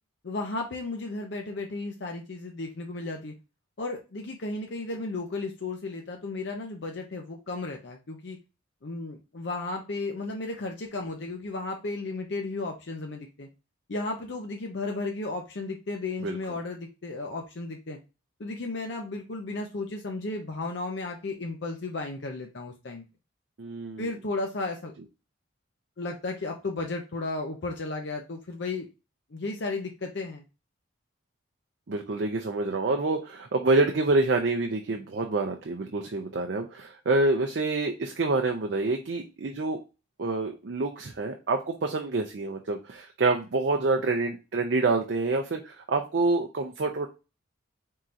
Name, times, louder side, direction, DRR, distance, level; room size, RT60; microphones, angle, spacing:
voice 1, 0.2-3.3 3.8-8.4 8.8-13.5 13.9-18.0 18.4-23.0 24.0-24.9 26.0-28.9 29.3-30.4, left 3 dB, 55° left, 2 dB, 0.6 m, -34 dB
voice 2, 23.6-24.1 31.9-39.8 40.2-47.1, right 3 dB, 55° right, 3 dB, 0.5 m, -27 dB
4.3 x 3.7 x 2.5 m, 0.29 s
head